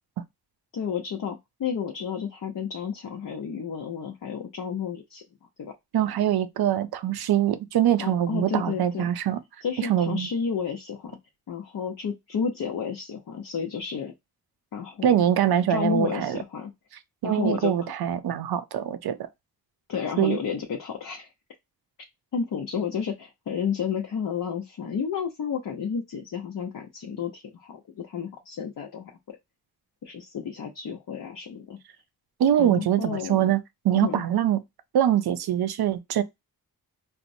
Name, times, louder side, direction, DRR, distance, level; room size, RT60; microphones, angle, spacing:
voice 1, 0.7-5.2 5.6-5.7 8.0-9.0 9.6-11.2 11.5-14.1 14.7-15.3 15.7-16.7 17.2-17.9 19.9-21.3 22.3-29.1 30.0-31.8 32.6-33.4 34.0-34.2, left 7 dB, 60° left, 0.7 m, -31 dB
voice 2, 5.9-9.4 9.8-10.3 15.0-16.4 17.2-19.2 20.2-20.4 32.4-34.6 34.9-36.2, right 10 dB, 75° right, 0.6 m, -23 dB
4.3 x 2.0 x 2.6 m
cardioid pair, 80°, 38 cm